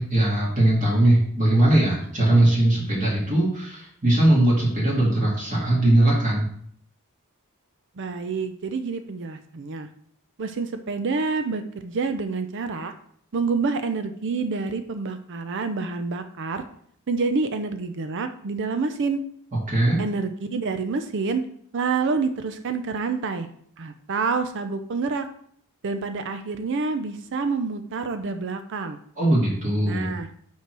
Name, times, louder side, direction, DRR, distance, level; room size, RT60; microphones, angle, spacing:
voice 1, 0.0-6.5 19.7-20.0 29.2-30.1, right 1 dB, 35° right, -5 dB, 2.0 m, -20 dB
voice 2, 8.0-9.9 10.4-12.9 13.3-16.6 17.1-19.2 20.0-21.4 21.7-23.5 23.8-25.3 25.8-29.0 29.8-30.3, right 4 dB, 55° right, 9 dB, 0.5 m, -27 dB
5.6 x 4.6 x 6.1 m, 0.63 s
head